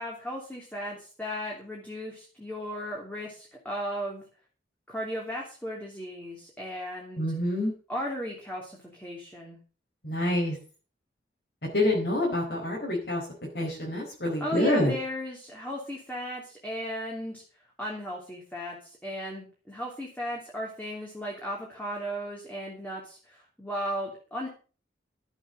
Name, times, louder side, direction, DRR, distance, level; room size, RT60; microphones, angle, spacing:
voice 1, 0.0-4.2 4.9-7.3 7.9-9.6 14.4-17.4 17.8-24.5, equal, 10° left, -3 dB, 3.0 m, -36 dB
voice 2, 7.2-7.7 10.0-10.6 11.6-13.2 13.5-14.9, left 1 dB, 60° left, -2 dB, 4.5 m, -27 dB
13.0 x 7.9 x 6.8 m, 0.37 s
head